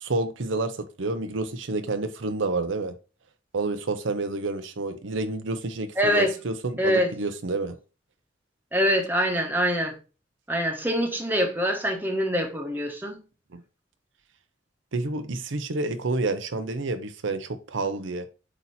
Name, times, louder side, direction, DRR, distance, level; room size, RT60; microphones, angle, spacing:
voice 1, 0.0-2.9 3.5-7.7 13.5-13.6 14.9-18.3, right 3 dB, 90° right, 0.7 m, -29 dB
voice 2, 6.0-6.3 6.8-7.1 8.7-9.9 10.5-13.2, equal, 10° right, 1.1 m, -24 dB
8.1 x 2.9 x 4.1 m
head